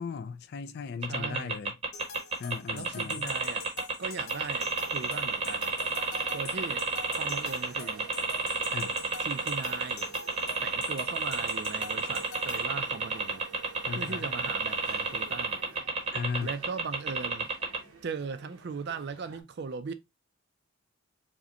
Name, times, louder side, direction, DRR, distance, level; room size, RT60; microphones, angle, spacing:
voice 1, 0.0-1.8 2.4-3.3 8.7-9.0 13.9-14.3 16.1-16.5, left 5 dB, 50° left, 0.3 m, -36 dB
sound 1, 1.0-17.8, right 4 dB, 30° right, 0.7 m, -30 dB
voice 2, 1.0-1.6 2.7-5.7 6.3-6.9 7.2-8.1 9.2-10.1 10.6-13.4 13.9-15.6 16.4-17.5 18.0-19.9, right 5 dB, 50° right, 0.4 m, -39 dB
sound 2, 1.9-12.6, left 5 dB, 80° left, 0.7 m, -45 dB
sound 3, 4.5-19.4, right 4 dB, 85° right, 0.9 m, -50 dB
4.8 x 2.2 x 2.8 m
head